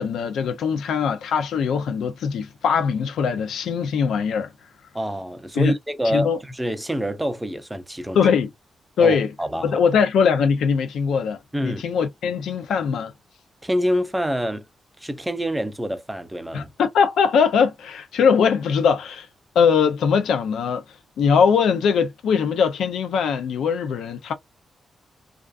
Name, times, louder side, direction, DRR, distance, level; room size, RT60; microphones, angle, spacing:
voice 1, 0.0-4.5 5.6-5.7 6.1-6.4 8.1-8.5 9.0-9.3 9.6-13.1 16.5-19.3 19.6-20.8 21.2-24.3, left 6 dB, 90° left, 0.4 m, -21 dB
voice 2, 4.9-8.2 9.0-9.8 11.5-11.8 13.6-14.6 15.0-16.7, equal, 10° right, 0.5 m, -26 dB
2.4 x 2.3 x 2.3 m
cardioid pair, 95°, 0 cm